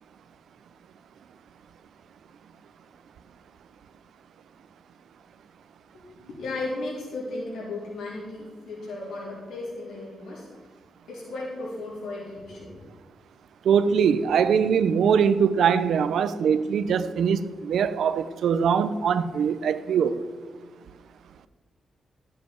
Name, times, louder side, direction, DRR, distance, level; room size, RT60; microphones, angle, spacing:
voice 1, 6.2-10.7 11.1-12.8, left 2 dB, 90° left, 3.8 m, -35 dB
voice 2, 13.6-20.2, right 7 dB, 85° right, 0.5 m, -22 dB
13.5 x 7.5 x 4.6 m
cardioid pair, 110°, 0 cm